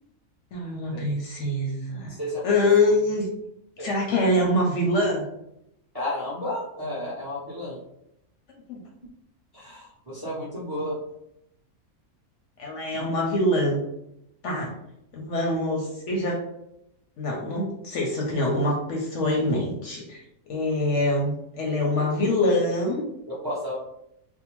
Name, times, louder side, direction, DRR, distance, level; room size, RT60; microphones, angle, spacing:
voice 1, 0.5-2.1 2.4-3.3 3.8-5.2 8.7-8.8 12.6-13.8 14.4-14.7 15.1-16.4 17.2-20.2 20.5-23.0, left 1 dB, 65° left, -1 dB, 0.8 m, -24 dB
voice 2, 2.1-2.5 3.8-3.9 5.9-7.8 9.5-11.0 12.9-13.1 23.3-23.8, left 1 dB, 25° right, -7 dB, 0.5 m, -32 dB
2.6 x 2.0 x 2.9 m, 0.81 s
omnidirectional pair, 1.5 m